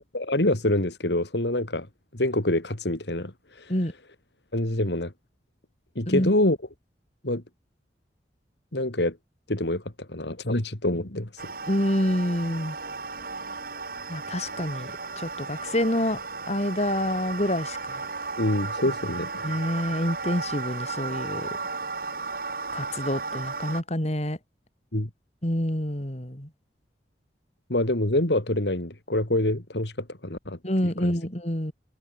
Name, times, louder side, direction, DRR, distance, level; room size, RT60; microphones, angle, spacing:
voice 1, 0.0-1.9 2.1-3.3 3.6-3.7 4.5-5.1 5.9-6.6 7.2-7.4 8.7-9.2 9.5-9.8 10.1-11.5 18.4-19.5 24.9-25.1 27.7-30.6 31.0-31.1, left 1 dB, 75° left, 3.2 m, -26 dB
sound 1, 11.4-23.8, right 4 dB, 55° right, 7.5 m, -34 dB
voice 2, 11.7-12.8 14.1-16.2 16.5-18.1 19.4-21.5 22.7-24.4 25.4-26.5 30.6-31.7, left 1 dB, 40° left, 4.6 m, -27 dB
head